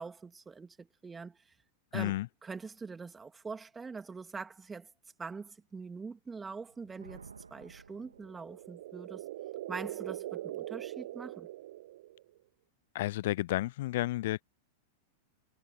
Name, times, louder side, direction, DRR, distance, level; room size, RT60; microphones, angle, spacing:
voice 1, 0.0-1.4 1.9-4.9 5.2-9.3 9.7-11.5, right 4 dB, 15° right, 2.9 m, -44 dB
voice 2, 1.9-2.3 12.9-14.4, left 16 dB, 60° left, 0.3 m, -31 dB
Thunder, 6.6-8.9, right 5 dB, 85° right, 1.8 m, -54 dB
sound 1, 8.1-12.4, right 15 dB, 65° right, 0.4 m, -42 dB
hypercardioid pair, 95°, 0 cm